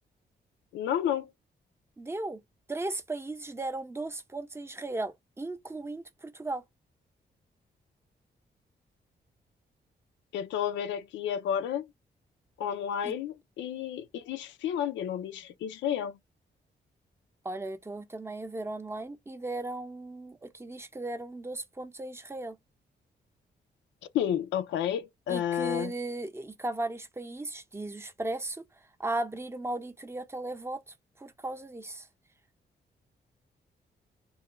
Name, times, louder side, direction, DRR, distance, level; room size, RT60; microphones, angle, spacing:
voice 1, 0.7-1.3 10.3-11.9 12.6-16.2 24.1-25.9, left 9 dB, 90° left, 0.4 m, -31 dB
voice 2, 2.0-2.4 2.7-6.6 13.0-13.2 17.4-22.6 25.3-28.6 29.0-32.1, right 2 dB, 15° right, 0.6 m, -36 dB
2.3 x 2.1 x 3.0 m
cardioid pair, 60°, 19 cm